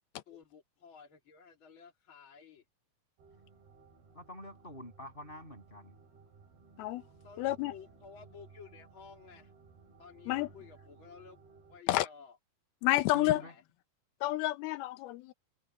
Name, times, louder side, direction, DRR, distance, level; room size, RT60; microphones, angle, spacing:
voice 1, 0.3-2.6 7.2-9.5 10.0-11.4 11.7-12.4 13.3-13.6, left 6 dB, 35° left, 2.8 m, -53 dB
sound 1, 3.2-11.8, right 4 dB, 90° right, 5.7 m, -59 dB
voice 2, 4.1-5.9 13.1-13.5, left 1 dB, 15° left, 7.9 m, -47 dB
voice 3, 7.4-7.7 10.3-10.5 11.9-12.1 12.8-13.4 14.2-15.3, left 16 dB, 90° left, 2.8 m, -29 dB
omnidirectional pair, 4.3 m